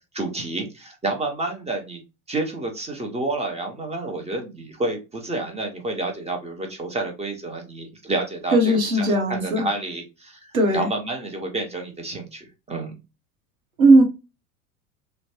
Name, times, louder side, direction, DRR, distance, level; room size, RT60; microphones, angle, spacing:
voice 1, 0.1-2.0 2.3-13.0, right 2 dB, 15° right, 0.7 m, -29 dB
voice 2, 8.5-9.6 10.5-10.9 13.8-14.0, right 2 dB, 85° right, 0.8 m, -17 dB
3.0 x 2.1 x 2.8 m
figure-of-eight pair, 75°, 42 cm